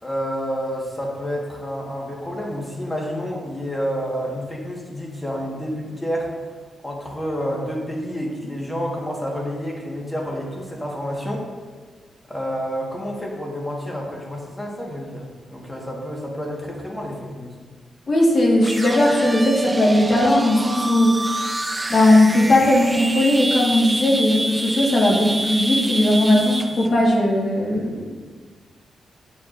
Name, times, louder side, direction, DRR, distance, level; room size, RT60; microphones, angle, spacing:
voice 1, 0.0-6.3 6.8-11.5 12.3-17.5, equal, 10° left, -2 dB, 1.5 m, -29 dB
voice 2, 18.1-21.3 21.9-28.1, left 1 dB, 30° left, -2 dB, 1.7 m, -18 dB
sound 1, 18.6-26.9, right 2 dB, 15° right, 0.5 m, -27 dB
11.5 x 7.3 x 2.6 m, 1.5 s
wide cardioid pair, 170°, 0 cm